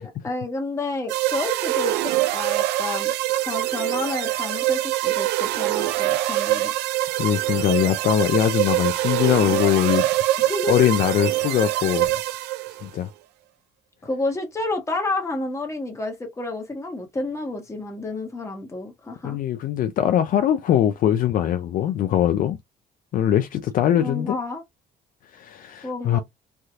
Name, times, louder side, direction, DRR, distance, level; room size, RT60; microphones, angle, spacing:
voice 1, 0.0-3.1 3.4-6.7 10.4-10.9 14.0-19.4 24.0-24.6 25.8-26.2, left 2 dB, 15° left, 1.2 m, -30 dB
sound 1, 1.1-12.9, right 15 dB, 85° right, 0.4 m, -24 dB
voice 2, 7.2-10.1 10.7-12.1 12.8-13.1 19.2-22.6 23.1-24.4 25.3-26.2, left 11 dB, 55° left, 0.4 m, -21 dB
3.3 x 2.7 x 2.4 m
cardioid pair, 110°, 17 cm